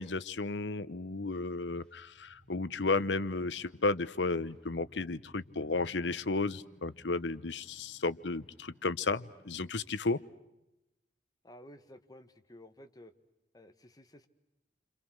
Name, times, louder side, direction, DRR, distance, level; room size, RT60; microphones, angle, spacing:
voice 1, 0.0-10.2, left 3 dB, 85° left, 16 dB, 1.0 m, -33 dB
sound 1, 1.5-10.0, left 1 dB, 5° left, 5.9 m, -62 dB
voice 2, 11.4-13.1 13.5-14.3, left 1 dB, 20° left, 7 dB, 1.7 m, -53 dB
29.5 x 27.0 x 6.4 m, 0.93 s
head